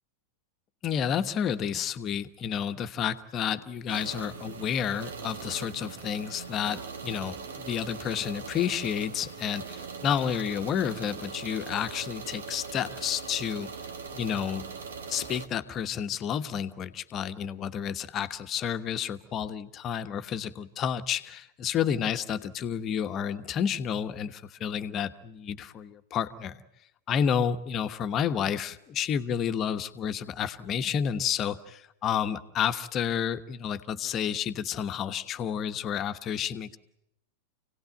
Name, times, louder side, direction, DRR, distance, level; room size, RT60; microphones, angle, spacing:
voice 1, 0.8-13.7 14.1-14.6 15.1-26.6 27.1-36.8, left 8 dB, 30° left, 10 dB, 1.3 m, -30 dB
sound 1, 3.9-15.5, right 5 dB, 65° right, 1.8 m, -41 dB
28.0 x 18.0 x 9.1 m, 0.84 s
figure-of-eight pair, 90°, 0 cm